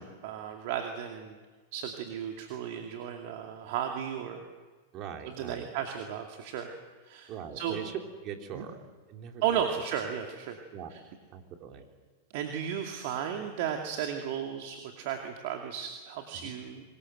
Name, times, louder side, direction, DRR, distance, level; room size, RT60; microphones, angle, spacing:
voice 1, 0.0-1.4 1.7-4.4 5.4-6.7 7.0-7.3 7.6-7.8 8.5-8.6 9.4-10.6 12.3-16.8, right 9 dB, 55° right, 3 dB, 2.3 m, -34 dB
voice 2, 4.9-5.7 7.3-8.8 9.1-9.6 10.7-10.9 11.3-11.8 16.4-16.5, right 8 dB, 40° right, 3 dB, 3.4 m, -41 dB
25.0 x 21.0 x 7.9 m, 1.4 s
hypercardioid pair, 105°, 0 cm